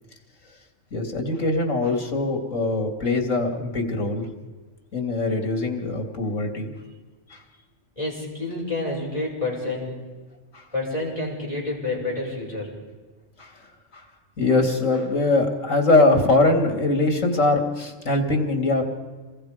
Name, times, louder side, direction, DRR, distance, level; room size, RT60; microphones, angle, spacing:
voice 1, 0.9-4.3 4.9-6.7 7.3-7.4 10.5-10.6 13.4-13.5 13.9-14.0 14.4-18.8, left 2 dB, 80° left, 4 dB, 3.1 m, -22 dB
voice 2, 8.0-10.0 10.7-12.7, left 2 dB, 25° left, -3 dB, 7.0 m, -29 dB
27.5 x 21.5 x 5.2 m, 1.3 s
omnidirectional pair, 1.3 m